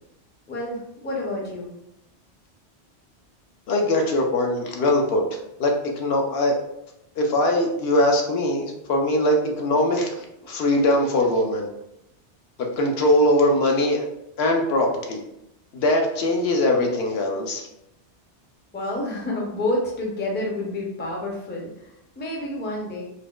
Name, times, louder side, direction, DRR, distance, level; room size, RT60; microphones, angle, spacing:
voice 1, 0.5-1.7 18.7-23.0, left 1 dB, 15° left, -2 dB, 0.4 m, -29 dB
voice 2, 3.7-5.2 5.6-6.6 7.2-10.1 10.4-11.7 12.6-14.1 14.4-15.2 15.7-17.7, left 1 dB, 70° left, 1 dB, 0.8 m, -21 dB
4.2 x 2.2 x 2.2 m, 0.81 s
omnidirectional pair, 1.2 m